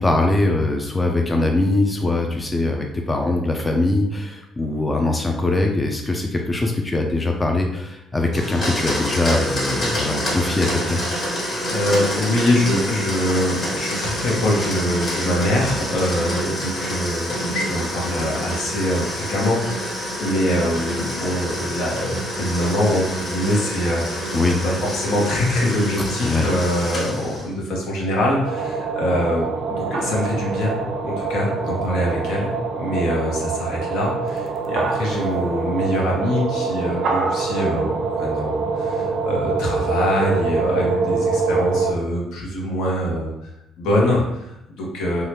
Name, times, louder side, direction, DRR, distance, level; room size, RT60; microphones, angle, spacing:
voice 1, 0.0-11.0 24.3-24.6 26.0-26.5, left 2 dB, 15° left, 2 dB, 0.3 m, -22 dB
Domestic sounds home sounds, 8.3-27.5, equal, 35° left, 1.3 m, -27 dB
voice 2, 11.4-24.2 24.6-43.5 43.8-45.2, left 1 dB, 80° left, -2 dB, 0.9 m, -24 dB
sound 1, 28.4-41.9, right 4 dB, 65° right, 0.4 m, -24 dB
2.8 x 2.3 x 3.2 m, 0.82 s
cardioid pair, 110°, 0 cm